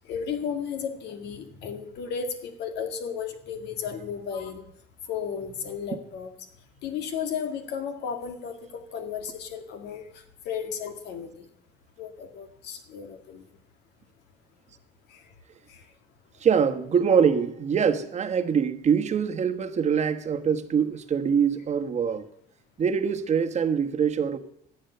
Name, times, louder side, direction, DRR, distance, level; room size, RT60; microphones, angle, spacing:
voice 1, 0.1-4.6 5.1-6.3 6.8-10.0 10.5-11.5 12.0-13.4 15.1-15.2 15.7-15.8, left 7 dB, 80° left, 2.0 m, -34 dB
voice 2, 16.4-22.3 22.8-24.4, right 7 dB, 40° right, 1.2 m, -24 dB
14.0 x 7.9 x 6.8 m
cardioid pair, 110°, 17 cm